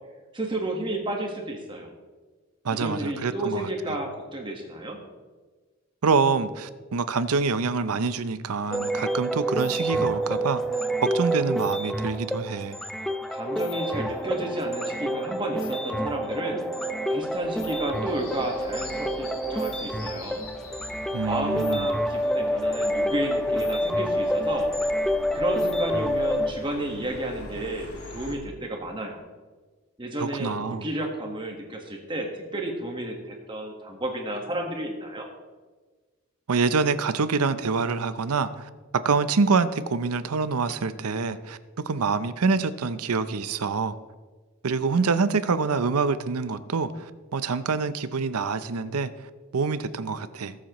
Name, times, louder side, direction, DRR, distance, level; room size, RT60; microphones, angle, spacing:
voice 1, 0.3-1.9 2.7-5.0 13.3-16.7 17.1-20.5 21.3-24.7 25.3-29.2 30.0-35.3, right 1 dB, 20° right, 1 dB, 1.4 m, -32 dB
voice 2, 2.6-3.7 6.0-12.8 21.1-21.9 30.2-30.9 36.5-41.6 41.9-44.0 44.6-49.1 49.5-50.6, right 4 dB, 85° right, 13 dB, 0.6 m, -26 dB
sound 1, 8.7-26.5, equal, ahead, 0.4 m, -28 dB
sound 2, 16.9-28.3, left 2 dB, 80° left, 2.0 m, -44 dB
18.5 x 7.5 x 3.1 m, 1.3 s
head